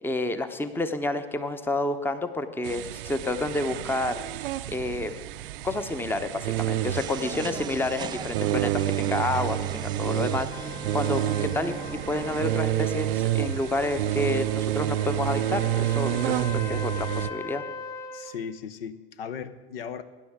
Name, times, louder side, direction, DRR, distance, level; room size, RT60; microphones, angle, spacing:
voice 1, 0.0-4.2 4.7-5.2 5.6-17.6, left 2 dB, 5° left, 10 dB, 0.8 m, -29 dB
sound 1, 2.6-17.3, right 14 dB, 60° right, 0.6 m, -29 dB
sound 2, 6.9-12.6, right 8 dB, 15° right, 0.3 m, -38 dB
voice 2, 7.3-7.7 18.1-20.0, left 7 dB, 65° left, 13 dB, 0.8 m, -37 dB
Trumpet, 10.5-18.3, left 5 dB, 45° left, 1.2 m, -41 dB
18.0 x 10.5 x 3.6 m, 1.3 s
figure-of-eight pair, 80°, 30 cm